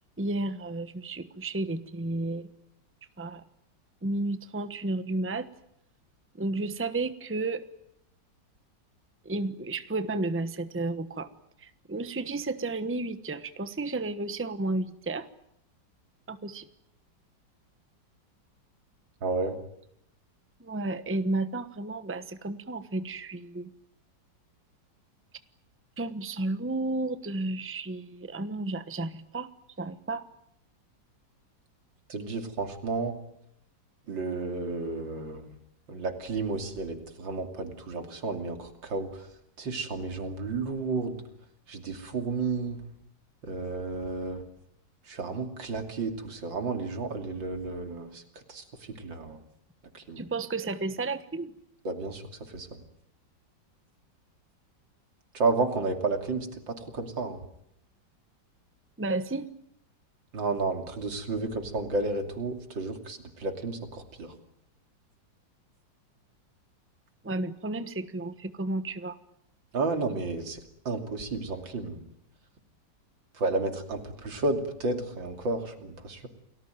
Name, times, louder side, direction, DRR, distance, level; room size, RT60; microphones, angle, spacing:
voice 1, 0.2-2.5 3.2-3.4 4.0-5.5 6.4-7.6 9.2-11.3 11.6-15.3 16.3-16.7 20.6-23.7 26.0-29.5 29.8-30.3 50.2-51.5 59.0-59.5 67.2-69.2, right 2 dB, 10° right, 11 dB, 0.9 m, -32 dB
voice 2, 19.2-19.6 32.1-33.2 34.1-35.6 35.9-39.3 39.6-41.2 41.7-42.8 43.4-44.4 45.1-48.2 48.5-49.4 49.9-50.2 51.9-52.2 52.5-52.8 55.3-57.4 60.3-64.3 69.7-72.1 73.3-76.3, right 3 dB, 85° right, 6 dB, 3.5 m, -32 dB
29.5 x 19.5 x 9.1 m, 0.75 s
omnidirectional pair, 2.0 m